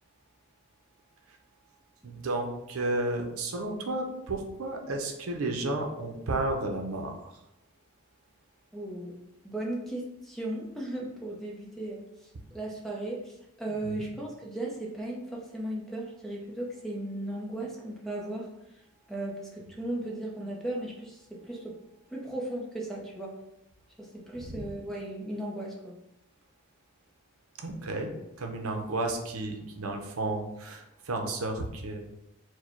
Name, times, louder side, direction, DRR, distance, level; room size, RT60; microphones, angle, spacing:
voice 1, 2.0-7.4 13.7-14.1 24.5-24.6 27.6-28.1 28.4-32.0, right 2 dB, 75° right, 3 dB, 0.7 m, -32 dB
voice 2, 8.7-9.1 9.4-18.5 19.1-21.7 22.1-23.4 24.0-26.0, right 1 dB, ahead, -3 dB, 0.6 m, -36 dB
4.7 x 2.2 x 4.4 m, 0.84 s
head